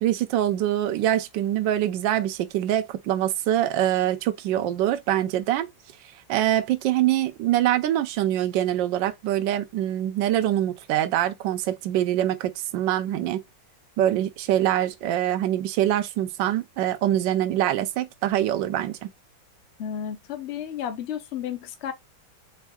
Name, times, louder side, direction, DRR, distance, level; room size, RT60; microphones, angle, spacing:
voice 1, 0.0-5.7 6.3-13.4 14.0-19.1, right 12 dB, 75° right, 1.3 m, -24 dB
voice 2, 19.8-21.9, left 9 dB, 55° left, 0.7 m, -32 dB
4.5 x 4.0 x 2.3 m
omnidirectional pair, 2.2 m